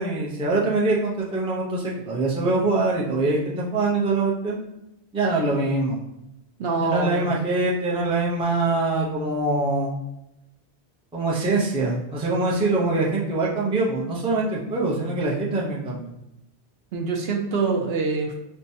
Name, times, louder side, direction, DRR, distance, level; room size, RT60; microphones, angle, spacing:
voice 1, 0.0-4.6 5.1-6.0 6.8-10.0 11.1-16.1, right 2 dB, 10° right, -4 dB, 0.3 m, -24 dB
voice 2, 6.6-7.3 16.9-18.3, right 4 dB, 70° right, 2 dB, 0.8 m, -25 dB
4.4 x 2.2 x 2.7 m, 0.87 s
omnidirectional pair, 1.1 m